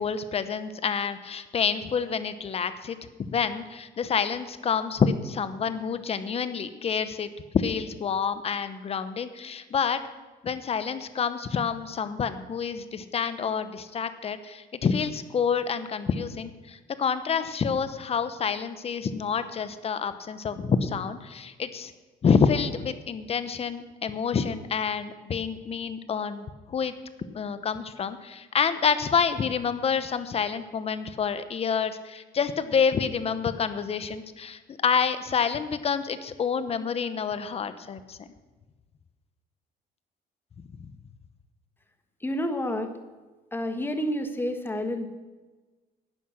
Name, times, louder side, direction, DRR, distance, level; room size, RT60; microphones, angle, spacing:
voice 1, 0.0-3.0 3.3-7.3 7.5-10.0 10.4-21.9 22.2-26.9 27.3-38.3, left 6 dB, 35° left, 12 dB, 0.9 m, -28 dB
voice 2, 42.2-42.9 43.5-45.1, equal, 10° left, 7 dB, 1.3 m, -29 dB
11.5 x 9.1 x 6.4 m, 1.3 s
cardioid pair, 110°, 17 cm